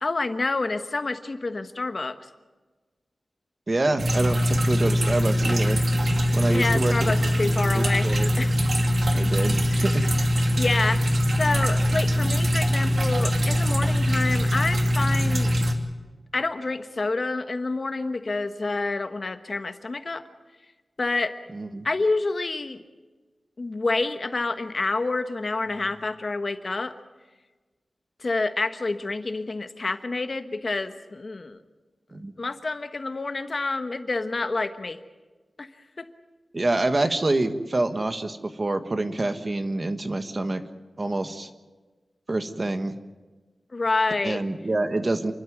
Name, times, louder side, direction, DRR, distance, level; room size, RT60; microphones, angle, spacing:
voice 1, 0.0-2.1 6.5-8.5 9.7-9.9 10.6-11.1 11.4-15.5 16.3-20.2 21.0-21.3 21.8-22.8 23.6-26.9 28.2-31.6 32.4-35.0 35.6-35.7 36.0-36.1 43.7-44.4, left 3 dB, 45° left, 9 dB, 1.3 m, -28 dB
voice 2, 3.7-5.8 6.3-7.1 7.4-8.3 9.2-10.1 21.5-21.9 32.1-32.3 36.5-40.6 41.0-41.5 42.3-43.0 44.2-45.3, right 2 dB, 35° right, 8 dB, 1.5 m, -26 dB
sound 1, 4.0-15.7, equal, 60° right, 2.7 m, -22 dB
28.5 x 12.5 x 9.5 m, 1.3 s
wide cardioid pair, 115°, 0 cm